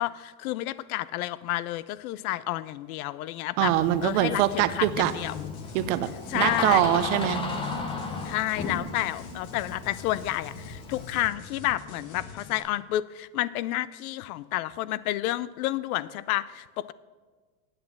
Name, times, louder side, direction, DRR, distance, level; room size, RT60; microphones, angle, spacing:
voice 1, 0.0-3.7 4.0-5.5 6.3-6.9 8.2-16.9, left 15 dB, 75° left, 18 dB, 0.5 m, -30 dB
Door, 3.6-11.3, left 3 dB, 10° left, 0.6 m, -35 dB
voice 2, 3.6-5.1 5.7-6.1 6.3-7.4, right 13 dB, 55° right, 13 dB, 0.7 m, -23 dB
sound 1, 4.8-12.6, left 4 dB, 45° left, 1.3 m, -44 dB
8.7 x 8.2 x 7.2 m, 1.4 s
supercardioid pair, 165°, 43 cm